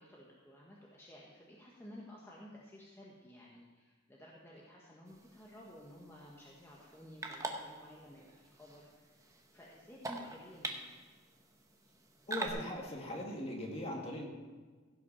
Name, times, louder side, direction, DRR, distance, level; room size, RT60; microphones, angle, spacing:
voice 1, 0.0-11.0, equal, 15° left, -4 dB, 1.3 m, -54 dB
sound 1, 5.1-12.5, right 2 dB, 15° right, 1.0 m, -46 dB
voice 2, 12.3-14.3, left 1 dB, 30° left, -1 dB, 2.1 m, -40 dB
16.0 x 6.0 x 5.5 m, 1.4 s
head